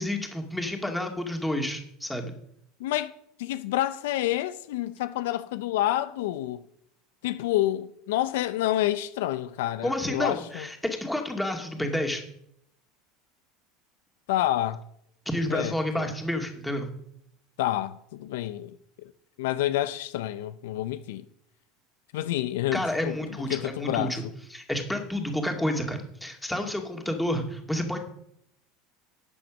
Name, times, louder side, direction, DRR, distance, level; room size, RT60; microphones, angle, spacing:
voice 1, 0.0-2.3 9.8-12.2 15.3-16.9 22.7-24.2 24.5-28.0, left 1 dB, 5° left, 2.3 m, -30 dB
voice 2, 2.8-3.1 3.4-6.6 7.2-10.7 14.3-14.8 15.5-16.1 17.6-18.8 19.4-21.2 22.1-23.2 23.5-24.1, left 14 dB, 80° left, 0.6 m, -28 dB
12.0 x 7.7 x 6.3 m
supercardioid pair, 110°, 0 cm